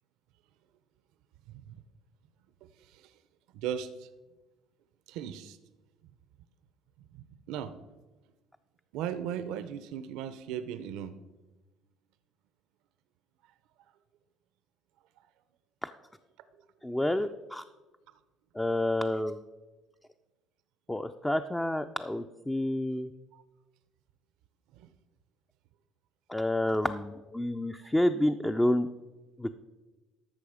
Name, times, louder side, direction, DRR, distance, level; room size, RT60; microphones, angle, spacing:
voice 1, 1.5-1.8 2.8-3.2 3.5-4.1 5.1-5.6 7.0-7.8 8.9-11.2 21.3-21.4 23.3-23.4 24.7-24.9 27.8-27.9, right 9 dB, 80° right, 12 dB, 0.6 m, -38 dB
voice 2, 16.8-17.6 18.6-19.4 20.9-23.1 26.3-28.9 29.4-29.6, left 1 dB, 5° left, 8 dB, 0.3 m, -29 dB
13.0 x 6.2 x 4.9 m, 1.1 s
cardioid pair, 135°, 0 cm